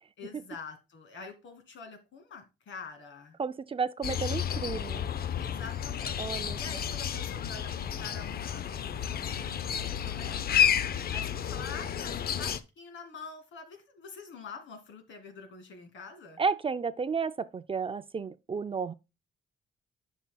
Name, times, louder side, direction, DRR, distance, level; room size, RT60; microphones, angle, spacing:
voice 1, 0.2-3.4 5.4-6.3 6.6-10.7 11.1-16.4, left 5 dB, 80° left, 2.1 m, -46 dB
voice 2, 3.4-5.1 6.2-6.6 16.4-18.9, right 5 dB, 30° right, 0.4 m, -32 dB
sound 1, 4.0-12.6, left 9 dB, 50° left, 0.5 m, -31 dB
11.5 x 5.7 x 2.2 m
wide cardioid pair, 135°, 19 cm